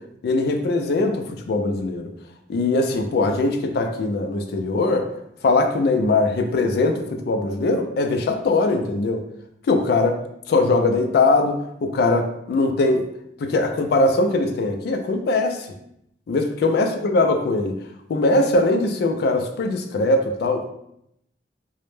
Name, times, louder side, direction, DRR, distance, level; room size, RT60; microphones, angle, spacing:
voice 1, 0.2-2.1 2.5-5.1 5.4-9.2 9.7-10.2 10.5-11.6 11.8-13.1 13.4-15.7 16.3-17.8 18.1-20.7, left 2 dB, 60° left, 5 dB, 0.3 m, -21 dB
2.0 x 2.0 x 3.1 m, 0.77 s
head